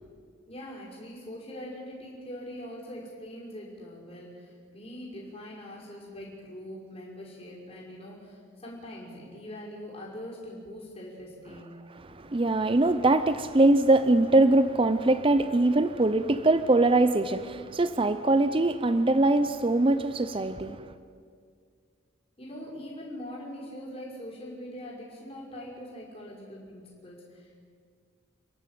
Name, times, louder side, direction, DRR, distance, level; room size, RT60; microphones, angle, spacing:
voice 1, 0.5-11.8 22.4-27.7, equal, 30° left, 5.8 m, -42 dB
voice 2, 12.0-20.9, right 2 dB, 25° right, 0.5 m, -22 dB
29.0 x 11.5 x 9.2 m
head